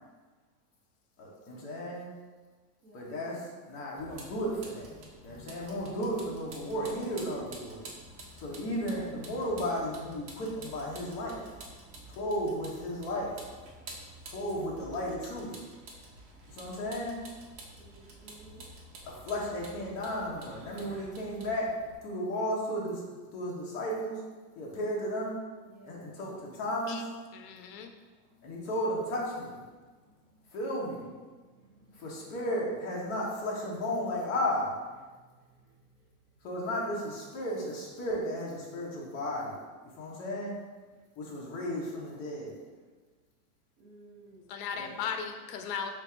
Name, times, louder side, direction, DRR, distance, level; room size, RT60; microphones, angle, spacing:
voice 1, 1.2-2.1 2.9-4.9 5.2-7.9 8.4-11.5 12.1-13.3 14.3-15.6 16.5-17.2 19.0-21.7 22.0-23.0 23.3-24.2 24.5-25.3 25.8-27.0 28.4-29.6 30.5-31.1 31.9-34.7 36.4-39.6 40.0-40.5 41.2-42.6 44.7-44.9, equal, 30° left, -4 dB, 0.8 m, -34 dB
Vehicle, 4.0-21.9, right 1 dB, 45° right, 0.8 m, -49 dB
voice 2, 17.8-18.6 25.6-26.2 27.5-27.6 28.1-28.3 29.7-30.5 31.3-32.4 35.1-36.1 43.8-44.9, right 1 dB, 25° right, -9 dB, 0.4 m, -58 dB
voice 3, 27.3-27.9 44.5-45.9, left 7 dB, 80° left, 6 dB, 0.6 m, -36 dB
3.2 x 2.5 x 4.3 m, 1.4 s
supercardioid pair, 160°, 48 cm